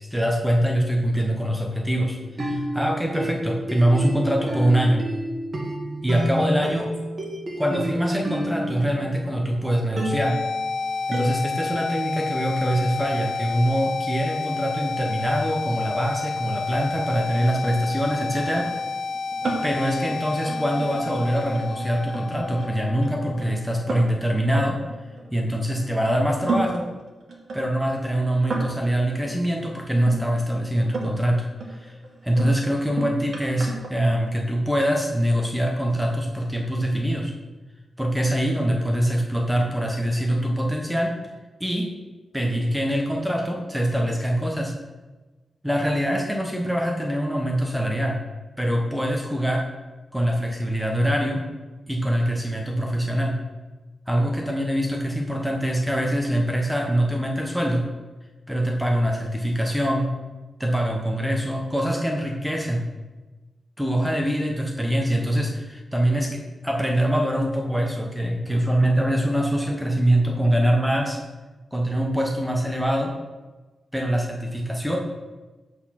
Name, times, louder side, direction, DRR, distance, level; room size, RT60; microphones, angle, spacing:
voice 1, 0.0-5.0 6.0-6.9 7.6-10.4 11.1-18.8 19.6-24.8 25.3-26.9 27.5-31.4 31.7-32.0 32.2-37.3 38.0-41.2 41.6-41.9 42.3-44.7 45.6-48.2 48.6-49.7 50.1-51.4 51.9-53.4 54.1-57.8 58.5-60.1 60.6-62.8 63.8-71.2 71.7-73.1 73.9-75.0, equal, 5° right, 1 dB, 0.8 m, -24 dB
sound 1, 2.2-9.5 10.0-11.3, right 1 dB, 30° right, 1.5 m, -30 dB
sound 2, 9.9-23.9, left 4 dB, 70° left, 0.6 m, -30 dB
sound 3, 18.5-25.8 26.3-30.2 30.8-31.3 31.6-34.7 35.4-35.9, right 3 dB, 50° right, 1.6 m, -34 dB
8.5 x 4.2 x 5.7 m, 1.2 s
wide cardioid pair, 165°, 0 cm